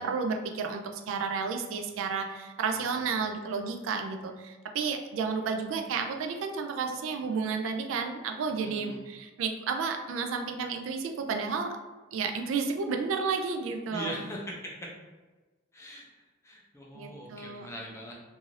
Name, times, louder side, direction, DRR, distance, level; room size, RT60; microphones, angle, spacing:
voice 1, 0.0-11.8 12.1-14.1 16.9-17.7, right 5 dB, 75° right, 4 dB, 0.3 m, -32 dB
voice 2, 2.7-3.2 8.5-9.0 13.9-14.7 15.7-16.1 16.4-18.1, equal, 15° left, -3 dB, 0.5 m, -41 dB
2.6 x 2.4 x 3.1 m, 1.2 s
head